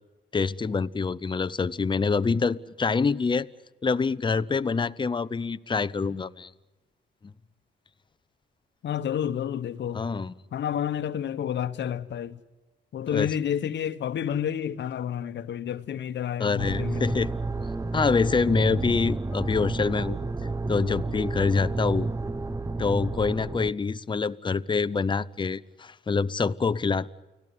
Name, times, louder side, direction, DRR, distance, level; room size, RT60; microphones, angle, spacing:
voice 1, 0.3-3.5 3.8-6.5 7.2-7.3 9.9-10.3 13.1-13.3 16.4-17.3 17.9-20.2 20.7-22.1 22.8-27.1, left 4 dB, 25° left, 0.8 m, -26 dB
voice 2, 8.8-10.1 10.5-12.4 12.9-17.2, left 9 dB, 65° left, 1.3 m, -30 dB
sound 1, 16.6-23.7, right 3 dB, 15° right, 0.9 m, -30 dB
30.0 x 18.0 x 9.7 m
cardioid pair, 90°, 20 cm